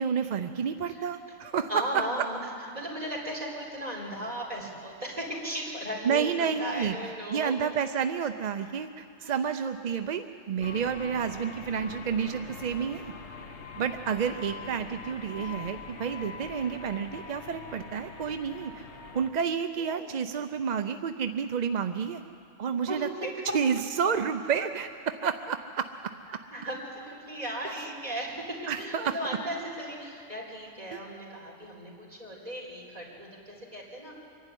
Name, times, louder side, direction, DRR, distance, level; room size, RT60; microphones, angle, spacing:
voice 1, 0.0-1.7 6.0-7.0 7.3-13.1 13.8-18.9 19.1-22.2 22.6-25.9 28.7-29.2 30.9-31.0, right 7 dB, 50° right, 8 dB, 0.5 m, -30 dB
voice 2, 1.7-2.4 2.7-7.5 9.2-9.4 19.8-20.2 22.8-23.4 26.5-34.1, equal, 35° right, -3 dB, 4.3 m, -36 dB
sound 1, 10.6-19.3, left 5 dB, 70° left, 1.4 m, -43 dB
24.5 x 11.5 x 9.9 m, 2.6 s
omnidirectional pair, 1.2 m